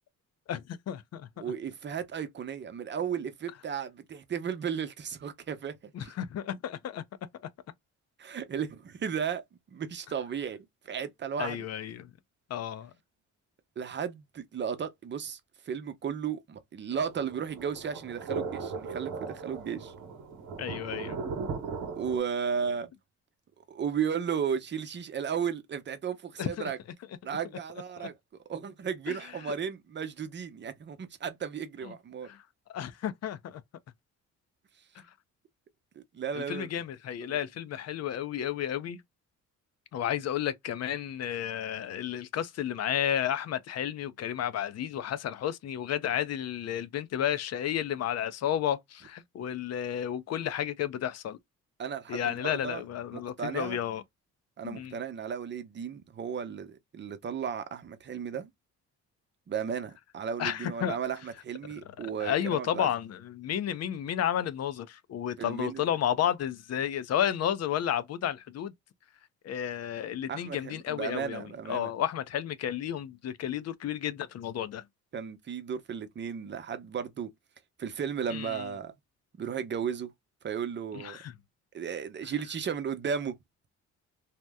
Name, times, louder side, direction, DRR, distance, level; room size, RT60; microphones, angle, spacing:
voice 1, 0.5-1.3 5.9-7.0 11.4-12.1 12.5-12.9 20.6-21.2 26.4-26.7 29.1-29.2 31.8-31.9 32.3-32.4 32.7-33.6 36.3-39.0 39.9-51.4 52.1-54.0 54.6-55.0 60.4-61.0 62.0-68.7 69.4-74.8 78.3-78.6 80.9-81.3, left 10 dB, 60° left, 0.5 m, -32 dB
voice 2, 1.4-6.1 8.2-9.4 9.7-11.6 13.8-15.4 15.7-19.9 21.9-22.9 23.7-26.8 27.2-28.1 28.5-32.3 36.1-36.7 37.2-37.4 51.8-52.8 53.1-53.8 54.6-58.5 59.5-62.9 65.4-65.8 70.3-71.9 75.1-77.3 77.8-78.9 79.4-80.1 80.4-81.2 81.7-83.4, right 7 dB, 40° right, 0.7 m, -34 dB
sound 1, 17.0-22.2, right 5 dB, 75° right, 1.0 m, -38 dB
2.8 x 2.1 x 3.4 m
cardioid pair, 90°, 30 cm